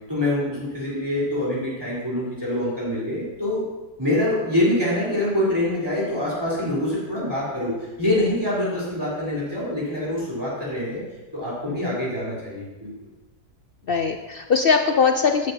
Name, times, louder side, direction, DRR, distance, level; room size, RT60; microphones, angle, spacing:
voice 1, 0.1-3.7 4.0-11.0 11.3-12.9, left 1 dB, 15° right, -7 dB, 3.9 m, -25 dB
voice 2, 11.7-12.0 13.9-15.5, left 5 dB, 70° left, 5 dB, 0.5 m, -21 dB
14.0 x 10.5 x 2.8 m, 1.1 s
omnidirectional pair, 1.6 m